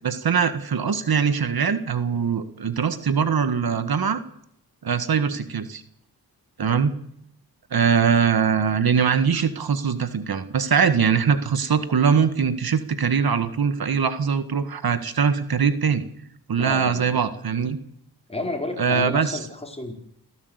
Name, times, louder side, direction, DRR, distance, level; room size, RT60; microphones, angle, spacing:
voice 1, 0.0-4.2 4.8-5.8 6.6-6.9 7.7-16.0 16.5-17.8 18.8-19.4, right 6 dB, 70° right, 11 dB, 1.7 m, -22 dB
voice 2, 16.6-17.2 18.3-19.9, left 2 dB, 15° left, 3 dB, 4.8 m, -31 dB
27.5 x 16.0 x 8.2 m, 0.74 s
cardioid pair, 75°, 38 cm